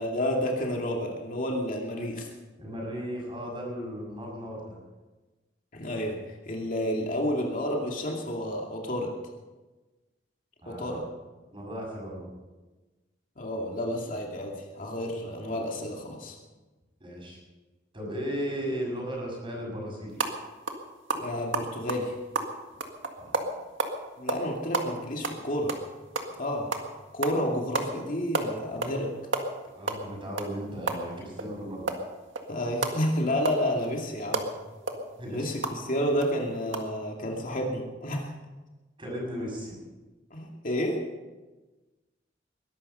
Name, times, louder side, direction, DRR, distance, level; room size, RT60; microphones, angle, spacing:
voice 1, 0.0-2.3 5.7-9.1 10.7-11.0 13.4-16.4 21.2-22.1 24.2-25.8 26.4-26.7 27.1-29.2 32.5-34.4 35.3-38.3 40.3-41.1, equal, 45° left, 0 dB, 2.4 m, -30 dB
voice 2, 2.6-4.8 10.6-11.0 11.5-12.3 17.0-17.4 17.9-20.1 23.2-23.4 29.7-31.9 35.2-35.5 39.0-39.8, equal, 30° right, -1 dB, 6.6 m, -36 dB
sound 1, 20.1-20.3 20.7-20.8 21.1-23.9 24.3-24.5 24.7-26.4 26.7-26.9 27.2-27.4 27.7-27.9 28.2-29.0 29.3-31.5 31.9-35.8 36.2-36.3 36.7-36.8, right 3 dB, 85° right, 1.9 m, -31 dB
21.0 x 12.0 x 5.6 m, 1.2 s
head